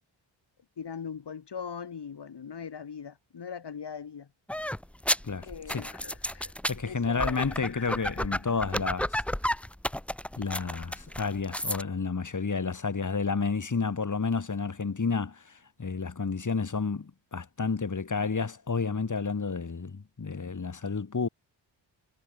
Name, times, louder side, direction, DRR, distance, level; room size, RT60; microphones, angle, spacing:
voice 1, 0.8-4.3 5.4-6.5 6.8-8.3, left 7 dB, 60° left, 4.3 m, -41 dB
sound 1, 4.5-11.8, left 1 dB, 5° left, 0.6 m, -32 dB
voice 2, 5.2-5.9 6.7-9.2 10.4-21.3, left 4 dB, 40° left, 5.1 m, -31 dB
cardioid pair, 80°, 46 cm